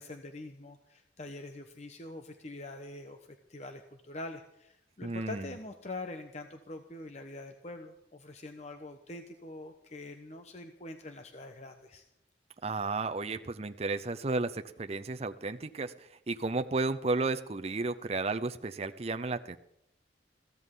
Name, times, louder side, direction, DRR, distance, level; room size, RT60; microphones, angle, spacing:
voice 1, 0.0-3.2 3.5-12.0, left 2 dB, 40° left, 5 dB, 1.0 m, -44 dB
voice 2, 5.0-5.5 12.6-19.6, right 3 dB, 35° right, 9 dB, 0.5 m, -33 dB
22.0 x 15.5 x 3.8 m, 0.78 s
head